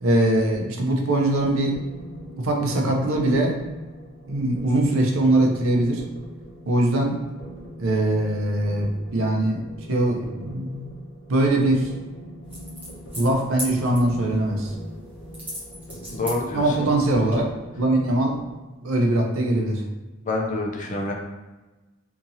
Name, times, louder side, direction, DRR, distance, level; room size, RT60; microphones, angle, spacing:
voice 1, 0.0-1.8 2.4-3.6 4.3-6.0 6.7-7.2 7.8-10.9 11.3-11.9 13.2-14.7 16.5-17.5 17.8-18.4 18.8-19.8, right 1 dB, 70° right, 1 dB, 0.5 m, -22 dB
sound 1, 1.1-18.6, equal, 65° left, 0.8 m, -42 dB
sound 2, 12.4-17.4, equal, 10° right, 0.7 m, -39 dB
voice 2, 16.1-16.9 20.2-21.1, left 2 dB, 35° left, 0 dB, 0.4 m, -27 dB
2.7 x 2.7 x 2.6 m, 1.2 s
head